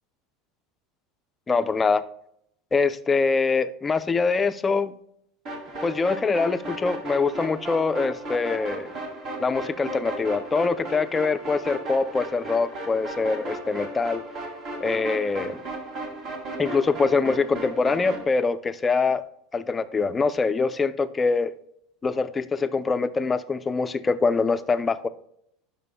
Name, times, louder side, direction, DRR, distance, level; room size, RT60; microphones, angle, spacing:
voice 1, 1.5-2.0 2.7-4.9 5.8-8.9 9.4-14.2 14.8-15.6 16.6-19.2 19.5-21.5 22.0-25.1, left 4 dB, 20° left, 11 dB, 0.4 m, -24 dB
sound 1, 5.5-18.3, right 1 dB, 45° right, 2.2 m, -35 dB
11.0 x 5.6 x 2.2 m, 0.71 s
supercardioid pair, 130°, 0 cm